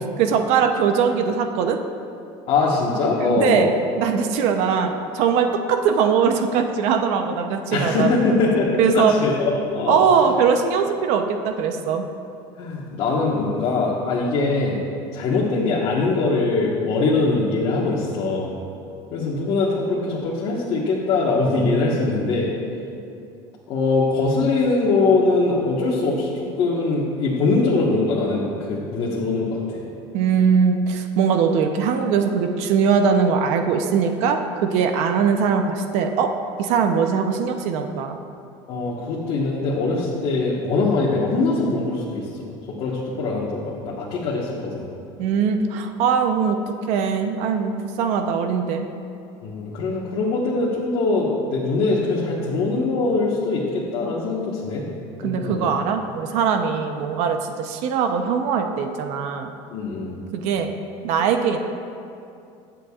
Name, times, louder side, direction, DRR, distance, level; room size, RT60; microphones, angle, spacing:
voice 1, 0.2-1.8 3.2-3.7 4.0-8.1 8.8-9.1 9.9-12.0 30.1-36.3 36.6-38.2 45.2-48.9 55.2-59.5 60.3-60.7 61.0-61.6, right 6 dB, 70° right, 5 dB, 0.8 m, -21 dB
voice 2, 2.5-3.7 7.7-10.2 12.6-14.8 15.1-18.6 19.1-22.5 23.7-29.8 38.7-44.9 49.4-54.9 55.2-55.7 59.7-60.2, left 3 dB, 55° left, -5 dB, 1.4 m, -22 dB
22.0 x 7.8 x 2.5 m, 2.6 s
cardioid pair, 150°, 12 cm